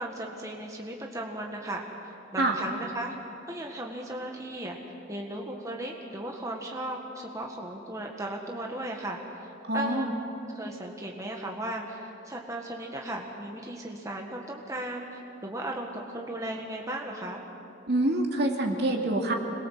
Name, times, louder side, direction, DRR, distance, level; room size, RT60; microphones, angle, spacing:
voice 1, 0.0-3.1 3.5-10.1 10.5-17.4, right 1 dB, 15° right, 0 dB, 1.6 m, -36 dB
voice 2, 9.7-10.1 17.9-19.3, right 1 dB, 60° right, 1 dB, 2.8 m, -26 dB
26.5 x 21.5 x 7.5 m, 2.9 s
head